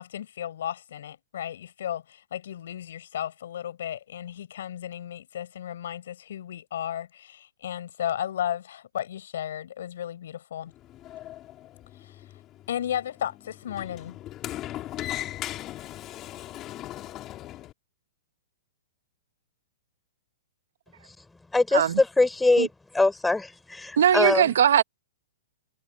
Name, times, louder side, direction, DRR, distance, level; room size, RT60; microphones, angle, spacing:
voice 1, 0.0-10.7 12.0-12.1 12.7-14.2, left 10 dB, 65° left, 5.8 m, -34 dB
Sliding door, 10.7-17.7, left 14 dB, 25° left, 4.2 m, -39 dB
voice 2, 21.5-22.7 22.9-24.5, left 2 dB, 5° left, 4.4 m, -23 dB
voice 3, 24.0-24.8, right 9 dB, 70° right, 1.1 m, -20 dB
hypercardioid pair, 150°, 0 cm